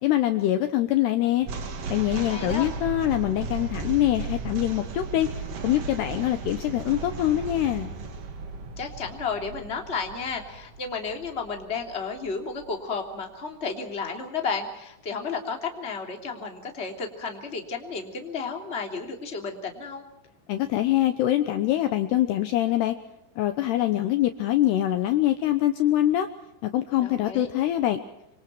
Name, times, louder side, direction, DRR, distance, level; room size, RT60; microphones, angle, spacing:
voice 1, 0.0-1.5 1.9-5.3 5.6-7.9 20.5-23.0 23.4-26.3 26.6-28.0, left 13 dB, 75° left, 8 dB, 2.7 m, -24 dB
sound 1, 1.4-12.7, right 4 dB, 55° right, 1.7 m, -36 dB
voice 2, 2.1-2.7 8.8-20.0 27.0-27.5, left 5 dB, 15° left, 3 dB, 2.4 m, -32 dB
27.5 x 25.5 x 4.6 m, 0.87 s
omnidirectional pair, 5.6 m